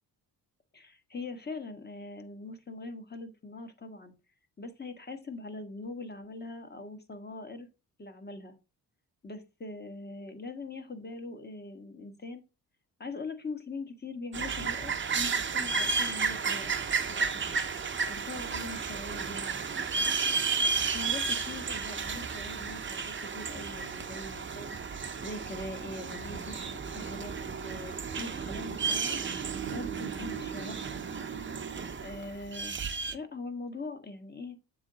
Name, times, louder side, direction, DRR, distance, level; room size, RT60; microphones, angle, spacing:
voice 1, 0.7-4.1 4.6-7.7 8.0-8.6 9.2-12.4 13.0-16.7 17.1-17.4 18.1-19.6 20.9-27.3 27.6-31.0 32.0-32.8 33.0-34.6, left 3 dB, 25° left, 7 dB, 1.3 m, -42 dB
sound 1, 14.3-33.1, right 5 dB, 30° right, 0.7 m, -33 dB
7.1 x 3.7 x 3.9 m, 0.29 s
cardioid pair, 85°, 39 cm